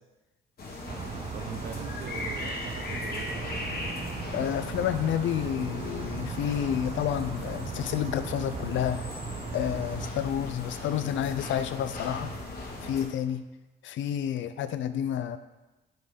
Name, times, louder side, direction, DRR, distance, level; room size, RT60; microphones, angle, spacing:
sound 1, 0.6-13.1, left 2 dB, 50° left, 1.9 m, -38 dB
sound 2, 0.9-10.1, right 7 dB, 30° right, 0.3 m, -38 dB
voice 1, 1.3-3.5, right 7 dB, 60° right, 7 dB, 0.9 m, -42 dB
Wind instrument woodwind instrument, 3.2-9.4, left 7 dB, 35° left, 1.0 m, -50 dB
voice 2, 4.3-9.0 9.5-12.3 12.8-13.4 13.8-15.4, left 10 dB, 75° left, 12 dB, 0.6 m, -30 dB
7.6 x 5.5 x 5.2 m, 1.1 s
cardioid pair, 90°, 20 cm